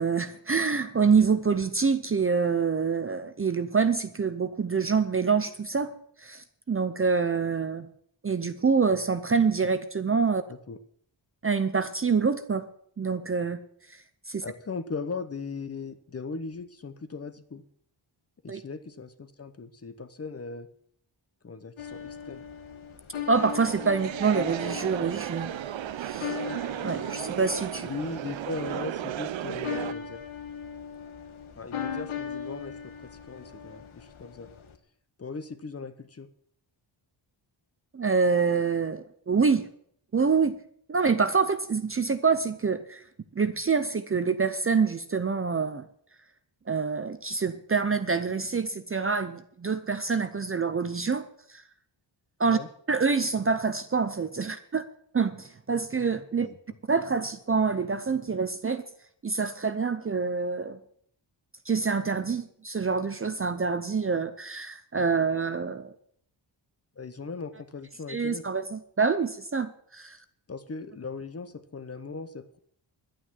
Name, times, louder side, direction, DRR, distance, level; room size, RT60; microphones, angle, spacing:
voice 1, 0.0-5.9 6.2-7.9 8.2-10.4 11.4-12.7 13.0-13.6 14.3-14.4 18.5-18.6 23.3-25.5 26.0-26.3 26.8-27.9 37.9-39.7 40.1-40.6 40.9-43.0 43.4-45.9 46.7-51.6 52.4-52.6 52.9-54.8 55.1-56.5 56.9-58.8 59.2-60.8 61.7-65.9 68.1-70.2, right 5 dB, 30° right, 11 dB, 0.6 m, -26 dB
voice 2, 14.4-17.6 18.4-20.7 21.4-22.4 27.8-30.2 31.5-34.5 35.2-36.3 52.5-52.7 56.4-56.6 67.0-68.4 70.5-72.6, left 4 dB, 30° left, 11 dB, 0.8 m, -38 dB
sound 1, 21.8-34.7, left 7 dB, 85° left, 1.6 m, -39 dB
sound 2, 23.3-29.9, right 12 dB, 70° right, 0.6 m, -34 dB
11.5 x 9.0 x 7.4 m, 0.64 s
wide cardioid pair, 170°, 48 cm